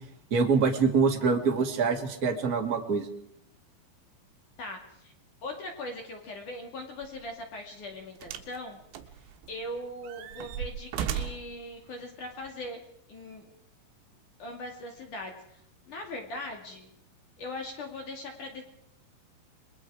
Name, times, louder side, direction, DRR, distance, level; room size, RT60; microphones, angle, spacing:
voice 1, 0.3-3.1, right 5 dB, 35° right, 3 dB, 1.4 m, -25 dB
voice 2, 4.6-5.1 5.4-8.8 9.5-12.8 13.1-13.5 14.4-16.9 17.4-18.6, left 1 dB, 50° left, 3 dB, 3.2 m, -40 dB
sound 1, 7.0-7.2 8.2-8.6 8.9-9.6 10.0-11.5 12.4-12.5, right 9 dB, 85° right, 3.9 m, -35 dB
29.0 x 22.0 x 4.9 m, 0.75 s
omnidirectional pair, 5.6 m